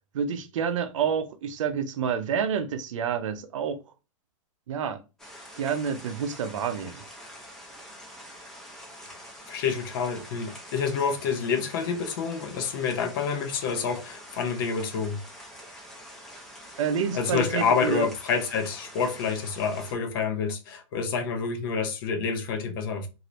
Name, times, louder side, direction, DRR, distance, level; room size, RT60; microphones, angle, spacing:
voice 1, 0.1-3.8 4.7-5.0 5.6-7.0 16.8-18.1, right 7 dB, 65° right, 0.6 m, -28 dB
sound 1, 5.2-19.9, equal, 5° left, 0.6 m, -46 dB
voice 2, 9.5-15.2 17.1-23.1, left 6 dB, 40° left, 0.7 m, -28 dB
2.8 x 2.7 x 3.0 m
hypercardioid pair, 160°, 17 cm